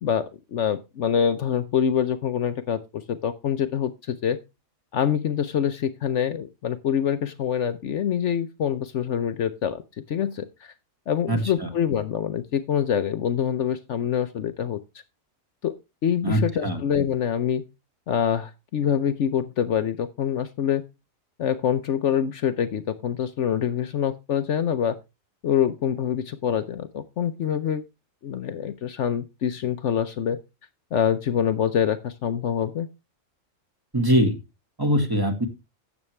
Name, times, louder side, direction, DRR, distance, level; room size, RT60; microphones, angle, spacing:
voice 1, 0.0-4.4 4.9-9.8 10.1-10.7 11.1-14.8 15.6-15.7 16.0-17.6 18.1-20.8 21.4-25.0 25.4-27.8 28.2-30.4 30.9-32.9, left 8 dB, 65° left, 11 dB, 1.0 m, -25 dB
voice 2, 11.3-11.7 16.2-16.8 33.9-34.4 34.8-35.5, equal, 15° right, 5 dB, 1.7 m, -22 dB
12.5 x 8.1 x 3.2 m, 0.25 s
omnidirectional pair, 1.4 m